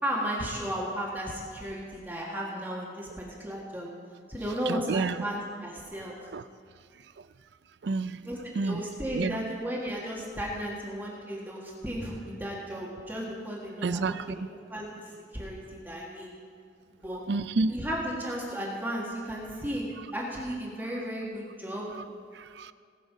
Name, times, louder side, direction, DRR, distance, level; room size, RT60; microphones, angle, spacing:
voice 1, 0.0-3.9 4.3-6.1 8.2-14.4 14.7-15.0 15.3-16.3 16.9-17.2 17.7-21.9, equal, 10° right, -4 dB, 1.7 m, -34 dB
voice 2, 4.7-5.2 6.3-6.4 7.8-8.2 8.6-8.8 9.1-9.5 13.8-14.5 17.3-17.7 22.0-22.1 22.3-22.7, right 3 dB, 70° right, 14 dB, 0.5 m, -29 dB
19.5 x 6.5 x 5.1 m, 2.1 s
head